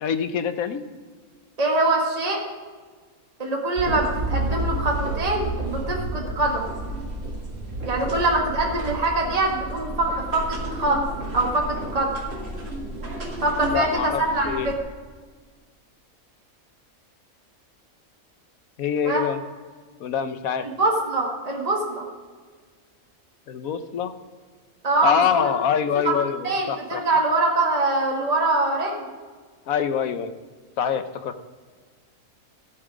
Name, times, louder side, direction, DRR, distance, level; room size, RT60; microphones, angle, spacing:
voice 1, 0.0-0.8 13.7-14.7 18.8-19.4 20.0-20.6 23.5-24.1 25.0-27.0 29.7-30.3 30.8-31.3, left 8 dB, 85° left, 10 dB, 1.3 m, -25 dB
voice 2, 1.6-2.4 3.4-6.7 7.8-11.0 11.3-12.2 13.4-14.8 19.0-19.2 20.6-22.1 24.8-25.5 25.9-26.2 26.4-29.0, right 2 dB, 25° right, -1 dB, 1.8 m, -24 dB
sound 1, 3.8-14.8, right 1 dB, 45° right, 2.1 m, -31 dB
13.5 x 8.9 x 5.0 m, 1.5 s
omnidirectional pair, 1.5 m